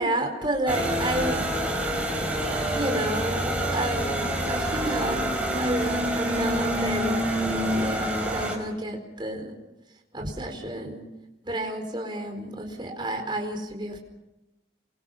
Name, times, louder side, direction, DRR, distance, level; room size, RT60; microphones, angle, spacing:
voice 1, 0.0-1.4 2.1-2.2 2.6-5.3 5.6-9.5 10.1-11.0 11.4-14.0, right 1 dB, 25° right, 3 dB, 4.5 m, -31 dB
sound 1, 0.7-8.5, right 1 dB, 5° right, 5.7 m, -27 dB
28.0 x 24.5 x 5.8 m, 0.96 s
head